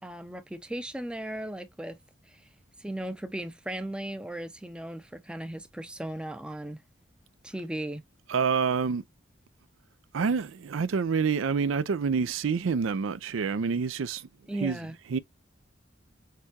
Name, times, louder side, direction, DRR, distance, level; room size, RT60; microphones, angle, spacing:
voice 1, 0.0-2.0 2.3-2.4 2.8-6.8 7.4-8.0 14.5-15.0, right 1 dB, 5° right, 0.5 m, -36 dB
voice 2, 8.3-9.0 10.1-14.3 14.6-14.8 15.1-15.2, right 5 dB, 90° right, 0.4 m, -27 dB
6.6 x 2.3 x 2.8 m
head